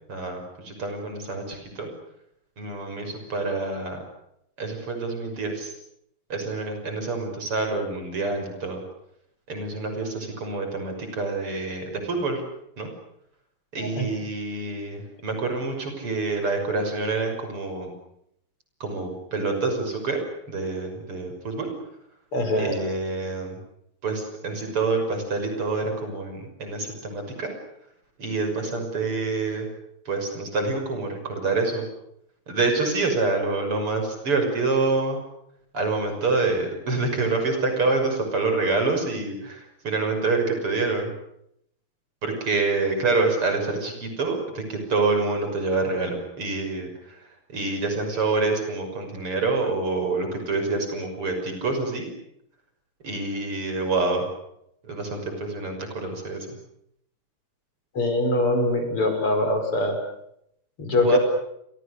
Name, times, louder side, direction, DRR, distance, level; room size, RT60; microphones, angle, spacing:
voice 1, 0.1-1.9 2.6-4.0 4.6-5.7 6.3-8.8 9.5-12.4 12.8-12.9 13.7-17.9 18.8-20.2 20.5-21.7 22.5-23.6 24.0-27.5 28.2-29.7 30.1-31.9 32.5-35.2 35.7-41.1 42.2-47.2 47.5-52.1 53.0-54.3 54.8-56.5 61.0-61.2, right 3 dB, 85° right, 5 dB, 7.0 m, -27 dB
voice 2, 13.8-14.1 22.3-22.7 57.9-60.0 60.8-61.2, left 1 dB, 80° left, 6 dB, 6.3 m, -23 dB
29.0 x 25.5 x 6.7 m, 0.76 s
omnidirectional pair, 2.4 m